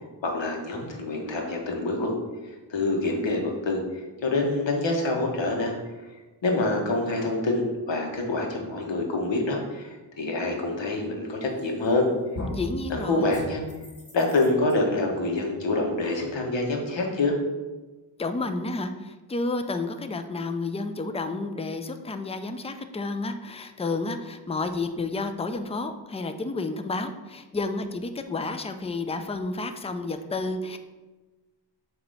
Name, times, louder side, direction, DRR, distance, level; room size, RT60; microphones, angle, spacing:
voice 1, 0.2-2.1 2.7-5.7 6.4-12.1 12.9-13.6 14.1-17.4, left 2 dB, 80° left, 1 dB, 1.4 m, -26 dB
sound 1, 11.6-12.0 12.3-12.7 13.3-14.7, left 1 dB, 35° left, 1.3 m, -37 dB
voice 2, 12.5-13.4 18.2-30.8, left 3 dB, 15° left, 8 dB, 0.4 m, -31 dB
7.3 x 3.0 x 5.4 m, 1.2 s
wide cardioid pair, 100°, 44 cm